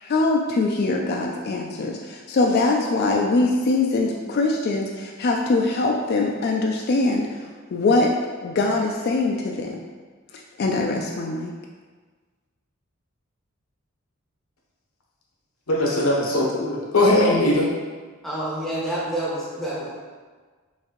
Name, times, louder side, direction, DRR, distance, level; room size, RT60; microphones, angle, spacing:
voice 1, 0.0-7.3 7.7-8.1 8.4-9.8 10.6-11.5, left 3 dB, 45° left, 0 dB, 0.3 m, -22 dB
voice 2, 15.7-17.7, left 1 dB, 80° left, -2 dB, 0.9 m, -20 dB
voice 3, 18.2-19.9, right 1 dB, ahead, -7 dB, 0.7 m, -28 dB
5.6 x 2.7 x 2.9 m, 1.4 s
head